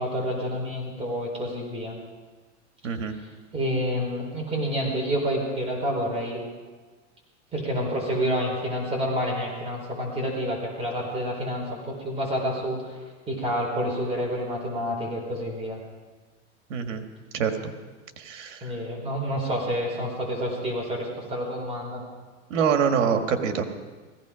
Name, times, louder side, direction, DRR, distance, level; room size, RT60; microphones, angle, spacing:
voice 1, 0.0-2.0 3.1-3.3 3.5-6.4 7.5-13.0 13.3-15.8 18.6-22.0, equal, 15° right, -2 dB, 4.5 m, -28 dB
voice 2, 2.8-3.1 16.7-17.0 17.3-17.5 18.2-18.6 22.5-23.7, right 7 dB, 85° right, 6 dB, 1.9 m, -25 dB
17.5 x 16.0 x 5.1 m, 1.3 s
supercardioid pair, 145°, 37 cm